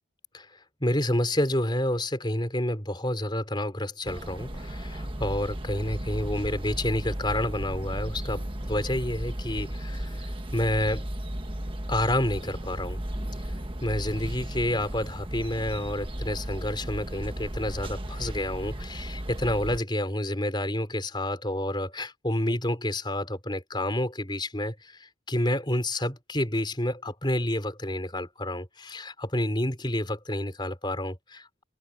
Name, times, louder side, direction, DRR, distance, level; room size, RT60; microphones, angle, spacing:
voice 1, 0.8-11.1 11.9-13.0 13.8-31.6, left 1 dB, 25° left, 4.0 m, -29 dB
sound 1, 4.0-19.8, right 1 dB, 25° right, 1.4 m, -35 dB
open air
head